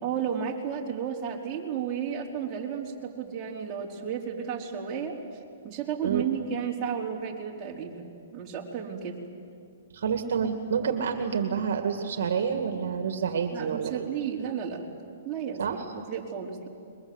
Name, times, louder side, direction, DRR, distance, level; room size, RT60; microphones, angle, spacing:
voice 1, 0.0-5.1 5.6-9.2 13.5-14.8 15.2-16.7, right 8 dB, 25° right, -3 dB, 4.6 m, -33 dB
voice 2, 9.9-14.1 15.6-15.9, right 6 dB, 70° right, 6 dB, 2.2 m, -28 dB
29.0 x 23.0 x 8.2 m, 2.3 s
hypercardioid pair, 140°, 0 cm